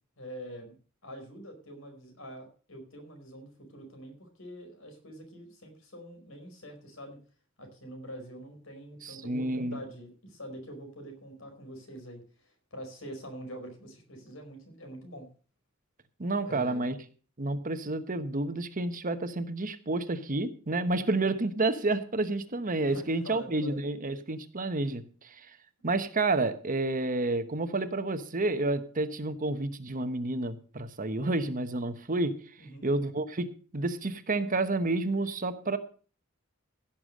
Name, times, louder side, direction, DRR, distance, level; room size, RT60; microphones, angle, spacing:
voice 1, 0.2-0.8 1.0-7.2 7.6-15.3 16.4-16.9 22.9-23.8 32.6-32.9, equal, 75° left, 5 dB, 4.7 m, -45 dB
voice 2, 9.0-9.8 16.2-16.9 17.4-25.4 25.8-32.4 32.8-35.8, right 2 dB, 40° right, 10 dB, 1.1 m, -30 dB
16.5 x 7.2 x 6.4 m, 0.40 s
head